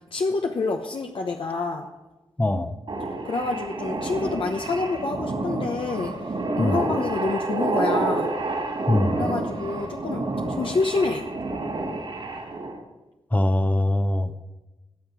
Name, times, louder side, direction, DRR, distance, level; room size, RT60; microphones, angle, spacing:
voice 1, 0.1-1.9 3.3-6.1 6.6-8.3 9.2-10.3 10.6-11.3, left 3 dB, 65° left, 2 dB, 0.9 m, -27 dB
voice 2, 2.4-2.8 6.6-6.8 8.9-9.2 13.3-14.4, left 1 dB, 15° left, 9 dB, 0.8 m, -22 dB
sound 1, 2.9-12.8, right 2 dB, 65° right, 3.5 m, -29 dB
18.0 x 7.1 x 4.8 m, 1.1 s
wide cardioid pair, 85°, 10 cm